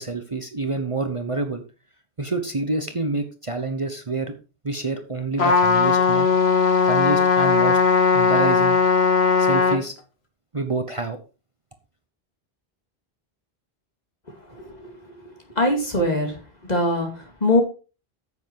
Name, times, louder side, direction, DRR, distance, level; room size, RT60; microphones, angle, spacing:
voice 1, 0.0-1.6 2.2-4.3 4.6-6.3 6.8-7.8 8.1-8.8 9.4-9.9 10.5-11.2, right 3 dB, 30° right, 7 dB, 1.0 m, -27 dB
Trumpet, 5.4-9.8, left 5 dB, 90° left, 1.9 m, -18 dB
voice 2, 14.5-14.9 15.6-16.3 16.7-17.6, left 1 dB, 40° left, 2 dB, 2.7 m, -22 dB
9.5 x 7.9 x 4.7 m, 0.33 s
omnidirectional pair, 1.0 m